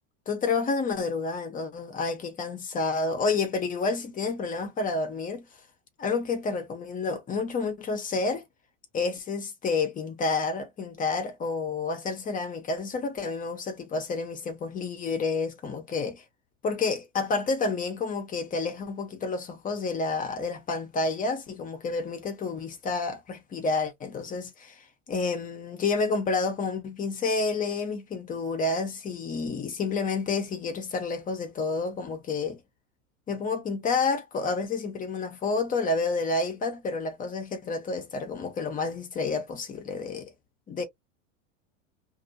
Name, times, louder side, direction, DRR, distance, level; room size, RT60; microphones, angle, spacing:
voice 1, 0.3-5.5 6.0-8.5 8.9-16.2 16.6-32.6 33.3-40.3 40.7-40.8, left 4 dB, 20° left, 0.8 m, -29 dB
2.7 x 2.6 x 2.6 m
supercardioid pair, 135°, 36 cm